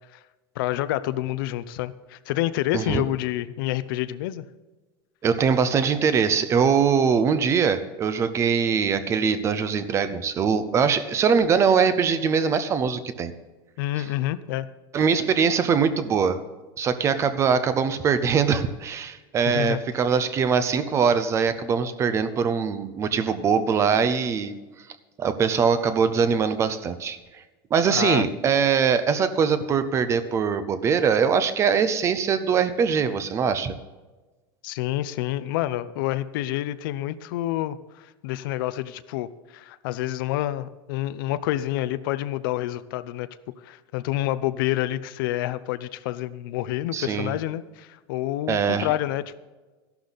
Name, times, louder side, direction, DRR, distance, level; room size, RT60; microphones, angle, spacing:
voice 1, 0.6-4.4 13.8-14.7 19.5-19.8 27.9-28.3 34.6-43.3 43.6-49.4, left 14 dB, 65° left, 14 dB, 0.7 m, -28 dB
voice 2, 5.2-13.3 14.9-16.4 16.8-24.5 25.2-27.2 27.7-33.7 46.9-47.4 48.5-48.9, right 6 dB, 25° right, 12 dB, 0.7 m, -22 dB
14.0 x 11.5 x 4.1 m, 1.2 s
supercardioid pair, 160°, 12 cm